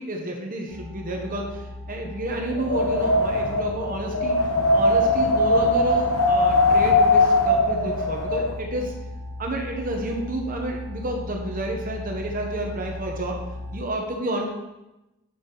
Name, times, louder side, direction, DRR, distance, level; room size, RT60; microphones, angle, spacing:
voice 1, 0.0-4.4 4.7-8.9 9.4-13.4 13.7-14.4, right 1 dB, 40° right, 2 dB, 1.0 m, -30 dB
sound 1, 0.7-13.8, left 1 dB, ahead, 3.0 m, -37 dB
Wind, 2.5-8.5, left 2 dB, 90° left, 1.1 m, -20 dB
8.6 x 5.8 x 3.8 m, 0.98 s
head